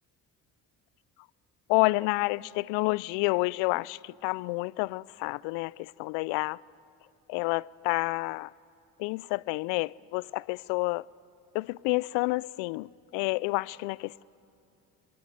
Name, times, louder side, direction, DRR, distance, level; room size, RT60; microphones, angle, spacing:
voice 1, 1.7-6.6 7.3-8.5 9.0-11.1 11.5-14.2, left 24 dB, 75° left, 0.5 m, -29 dB
26.5 x 26.0 x 7.9 m
hypercardioid pair, 60°, 44 cm